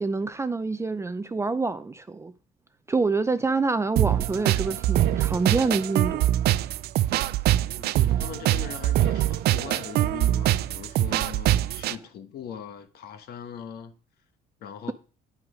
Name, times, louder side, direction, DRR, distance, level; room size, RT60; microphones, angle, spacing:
voice 1, 0.0-2.3 2.9-6.3, right 3 dB, 15° right, 0.5 m, -26 dB
sound 1, 4.0-12.0, right 13 dB, 70° right, 0.4 m, -24 dB
voice 2, 7.7-13.9 14.6-14.9, left 8 dB, 70° left, 1.2 m, -40 dB
9.9 x 6.0 x 5.0 m
cardioid pair, 110°, 17 cm